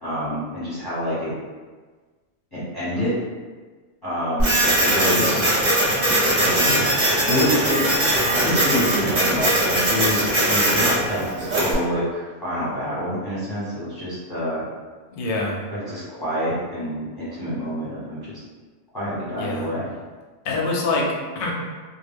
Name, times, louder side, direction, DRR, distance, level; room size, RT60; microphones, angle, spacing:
voice 1, 0.0-1.3 2.5-3.2 4.0-5.4 6.3-7.8 8.3-14.6 15.7-18.4 18.9-19.9, equal, 25° left, -11 dB, 0.6 m, -27 dB
Printer, 4.4-11.7, right 1 dB, 40° right, 0.8 m, -20 dB
voice 2, 5.0-5.5 6.6-6.8 15.1-15.6 19.4-19.7 20.4-21.5, left 2 dB, 60° left, -1 dB, 0.6 m, -26 dB
2.2 x 2.2 x 3.3 m, 1.4 s
omnidirectional pair, 1.2 m